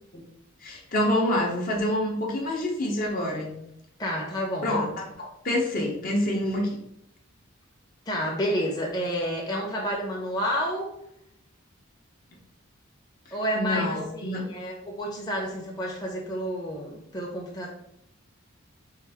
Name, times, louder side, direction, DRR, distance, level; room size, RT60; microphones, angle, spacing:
voice 1, 0.6-3.6 4.6-6.8 13.5-14.4, left 1 dB, 45° left, -1 dB, 0.9 m, -27 dB
voice 2, 4.0-4.7 8.1-10.9 13.3-17.7, equal, 20° left, -3 dB, 0.8 m, -30 dB
4.8 x 2.6 x 3.5 m, 0.75 s
head